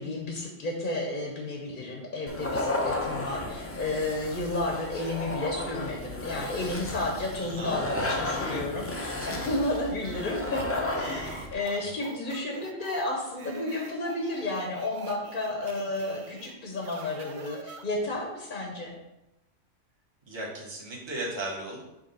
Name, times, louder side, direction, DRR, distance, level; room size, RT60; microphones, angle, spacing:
voice 1, 0.0-18.9, left 2 dB, 45° left, 0 dB, 0.9 m, -32 dB
sound 1, 2.3-11.6, left 2 dB, 20° left, 0.4 m, -33 dB
voice 2, 3.3-3.6 7.6-8.1 9.2-9.3 20.3-21.8, right 2 dB, 20° right, -3 dB, 1.2 m, -37 dB
sound 2, 10.0-18.2, right 5 dB, 60° right, 0.5 m, -46 dB
5.4 x 3.4 x 5.4 m, 0.93 s
omnidirectional pair, 1.3 m